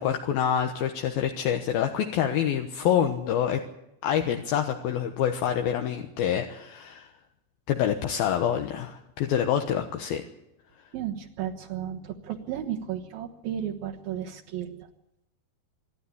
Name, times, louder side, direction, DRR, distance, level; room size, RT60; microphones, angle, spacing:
voice 1, 0.0-3.6 4.0-7.1 7.7-10.2, left 9 dB, 75° left, 4 dB, 3.0 m, -26 dB
voice 2, 10.9-14.9, right 10 dB, 70° right, -2 dB, 3.0 m, -34 dB
26.5 x 12.5 x 9.9 m, 0.87 s
omnidirectional pair, 4.5 m